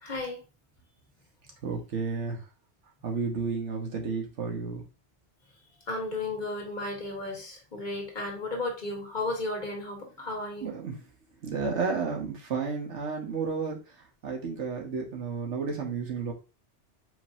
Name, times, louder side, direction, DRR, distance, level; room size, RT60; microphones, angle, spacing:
voice 1, 0.0-0.4 5.9-10.7, left 2 dB, 45° left, 0 dB, 1.4 m, -34 dB
voice 2, 1.6-2.4 3.0-4.8 10.6-11.0 11.4-13.8 14.2-16.3, right 5 dB, 85° right, 1 dB, 1.5 m, -32 dB
4.9 x 3.9 x 2.7 m, 0.31 s
omnidirectional pair, 1.2 m